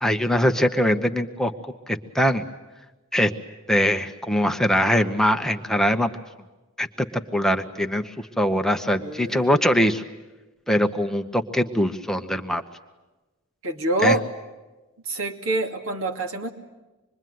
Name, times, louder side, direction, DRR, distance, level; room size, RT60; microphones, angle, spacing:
voice 1, 0.0-2.4 3.1-3.3 3.7-6.1 6.8-7.1 7.3-10.0 10.7-12.6 14.0-14.2, equal, ahead, 5 dB, 1.0 m, -22 dB
voice 2, 9.0-9.4 13.6-14.2 15.1-16.5, right 2 dB, 75° right, 4 dB, 2.6 m, -26 dB
26.5 x 22.0 x 9.4 m, 1.1 s
head